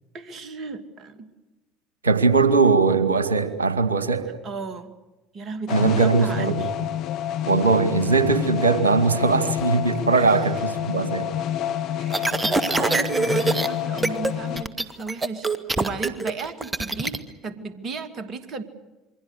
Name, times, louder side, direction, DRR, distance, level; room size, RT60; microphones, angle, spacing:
voice 1, 0.1-1.3 4.4-4.9 5.3-6.7 10.1-10.5 12.0-18.6, right 4 dB, 40° right, 10 dB, 2.5 m, -34 dB
voice 2, 2.0-4.3 5.7-6.5 7.5-11.3, right 4 dB, 80° right, 10 dB, 2.1 m, -20 dB
sound 1, 5.7-14.6, left 10 dB, 55° left, 1.2 m, -29 dB
sound 2, 12.1-13.7 14.0-14.3 14.6-17.2, right 3 dB, 15° right, 2.2 m, -24 dB
28.0 x 23.5 x 6.7 m, 1.1 s
figure-of-eight pair, 60°, 0 cm